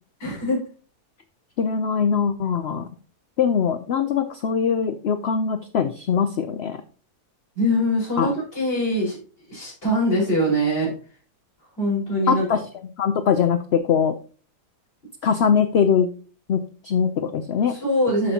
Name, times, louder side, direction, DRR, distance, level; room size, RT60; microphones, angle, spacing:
voice 1, 0.2-0.6 7.5-9.2 9.5-10.9 11.8-12.4 17.7-18.3, equal, 35° left, -5 dB, 5.1 m, -22 dB
voice 2, 1.6-2.8 3.4-6.8 8.2-8.3 12.3-12.6 13.0-14.1 15.2-16.1 16.5-16.6 16.8-17.8, left 7 dB, 65° left, 9 dB, 0.6 m, -21 dB
13.0 x 5.5 x 2.8 m, 0.39 s
omnidirectional pair, 1.7 m